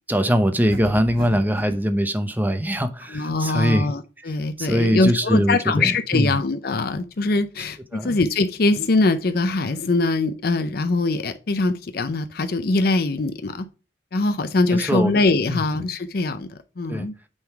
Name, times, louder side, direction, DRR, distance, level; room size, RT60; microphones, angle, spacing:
voice 1, 0.1-3.9 4.6-6.3 7.9-8.2 14.7-15.2 15.5-15.6 16.9-17.1, equal, 10° right, 0.8 m, -22 dB
sound 1, 0.7-1.8, right 1 dB, 50° right, 1.5 m, -35 dB
voice 2, 3.1-13.7 14.1-17.1, left 3 dB, 55° left, 0.6 m, -22 dB
8.9 x 3.9 x 4.6 m
head